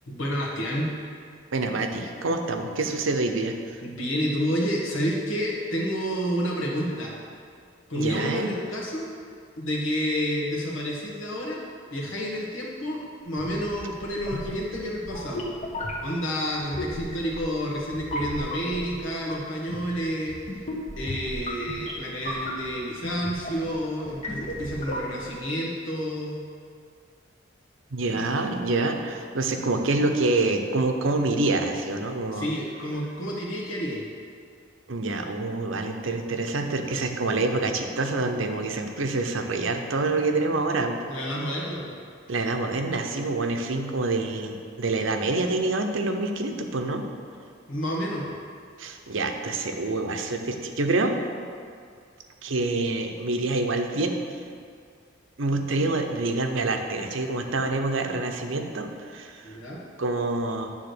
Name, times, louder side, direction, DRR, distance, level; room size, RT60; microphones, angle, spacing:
voice 1, 0.1-0.9 3.8-7.1 7.9-9.2 9.6-11.6 11.9-15.4 16.0-20.6 21.0-26.4 32.3-34.1 41.1-42.0 47.7-48.2 59.4-59.8, equal, 75° left, -3 dB, 1.7 m, -29 dB
voice 2, 1.5-3.8 8.0-8.6 27.9-32.5 34.9-41.0 42.3-47.0 48.8-51.2 52.4-54.2 55.4-59.5 60.0-60.7, right 2 dB, 70° right, 4 dB, 0.7 m, -26 dB
sound 1, 13.3-25.4, left 1 dB, 35° left, 1.1 m, -35 dB
9.7 x 3.7 x 6.7 m, 2.2 s
head